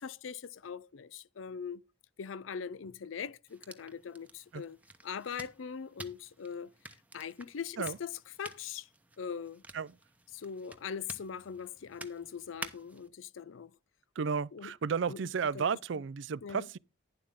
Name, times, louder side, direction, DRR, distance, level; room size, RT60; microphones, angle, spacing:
voice 1, 0.0-1.8 2.2-4.8 5.0-6.7 7.1-8.9 9.2-9.6 10.3-13.7 14.5-14.7 15.1-15.2 15.5-15.6 16.4-16.7, left 7 dB, 80° left, 0.5 m, -41 dB
sound 1, 3.5-13.1, right 2 dB, 10° right, 0.9 m, -51 dB
voice 2, 14.2-16.8, right 6 dB, 70° right, 0.4 m, -33 dB
11.5 x 10.5 x 3.6 m
head